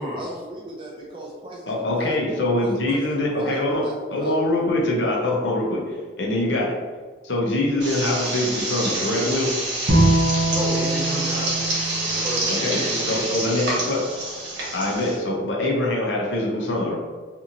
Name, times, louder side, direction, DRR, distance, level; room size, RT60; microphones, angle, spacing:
voice 1, 0.2-4.4, right 2 dB, 30° right, -4 dB, 0.4 m, -37 dB
voice 2, 1.7-3.8 4.1-5.8 6.2-6.7 7.2-9.5 12.5-14.0 14.7-16.9, left 1 dB, 85° left, -2 dB, 0.7 m, -23 dB
sound 1, 7.8-15.1, right 2 dB, 80° right, 1.0 m, -27 dB
Bowed string instrument, 9.9-13.2, right 2 dB, 65° right, 0.6 m, -23 dB
voice 3, 10.4-13.2, equal, 10° right, -10 dB, 1.2 m, -31 dB
2.9 x 2.6 x 2.5 m, 1.5 s
head